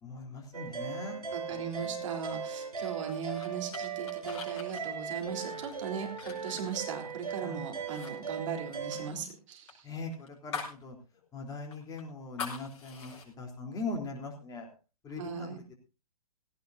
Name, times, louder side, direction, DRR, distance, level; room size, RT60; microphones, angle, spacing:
voice 1, 0.0-1.2 1.5-2.0 7.4-7.6 9.8-11.0 11.3-14.7 15.0-15.5, left 3 dB, 20° left, 2 dB, 3.6 m, -40 dB
sound 1, 0.5-9.1, right 6 dB, 80° right, 3.4 m, -38 dB
voice 2, 1.3-9.9 15.2-15.6, right 7 dB, 55° right, 4 dB, 3.7 m, -38 dB
sound 2, 2.8-7.4 7.8-8.1 8.4-10.8 11.2-11.3 11.7-13.3, left 5 dB, 50° left, 5.4 m, -44 dB
17.0 x 16.5 x 2.7 m, 0.32 s
figure-of-eight pair, 120°, 19 cm